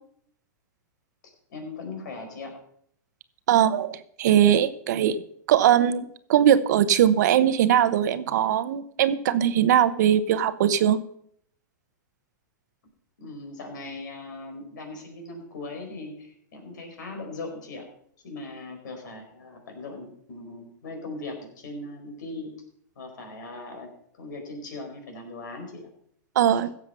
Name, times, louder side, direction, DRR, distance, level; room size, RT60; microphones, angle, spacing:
voice 1, 1.2-2.6 13.2-17.9 18.2-22.5 22.9-25.9 26.5-26.6, left 2 dB, 75° left, 3 dB, 4.6 m, -39 dB
voice 2, 3.5-5.2 5.5-11.0 26.4-26.7, right 10 dB, 65° right, 13 dB, 1.0 m, -20 dB
16.0 x 7.3 x 5.6 m, 0.66 s
hypercardioid pair, 115°, 10 cm